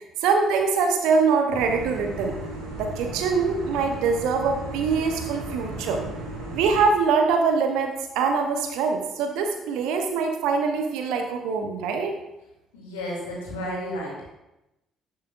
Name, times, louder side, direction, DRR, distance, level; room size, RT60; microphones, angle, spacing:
voice 1, 0.0-2.4 2.7-6.0 6.5-12.2, right 5 dB, 60° right, 4 dB, 0.8 m, -23 dB
sound 1, 1.5-6.8, right 1 dB, 80° right, 2.2 m, -35 dB
voice 2, 12.7-14.3, equal, 75° left, -3 dB, 2.7 m, -32 dB
11.0 x 8.6 x 2.5 m, 0.94 s
figure-of-eight pair, 45°, 0 cm